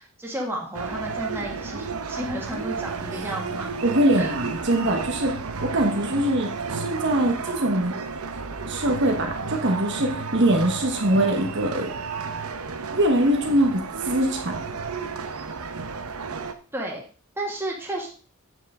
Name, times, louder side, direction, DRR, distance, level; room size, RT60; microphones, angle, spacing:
voice 1, 0.0-3.7 4.2-4.4 5.1-5.3 16.2-17.0 17.4-18.1, right 1 dB, 10° right, -2 dB, 1.9 m, -33 dB
sound 1, 0.7-16.5, right 5 dB, 80° right, 0.8 m, -32 dB
voice 2, 3.5-8.0 8.7-11.9 12.9-13.8 14.1-14.6, right 1 dB, 55° right, 3 dB, 1.2 m, -23 dB
8.2 x 7.3 x 3.6 m, 0.39 s
head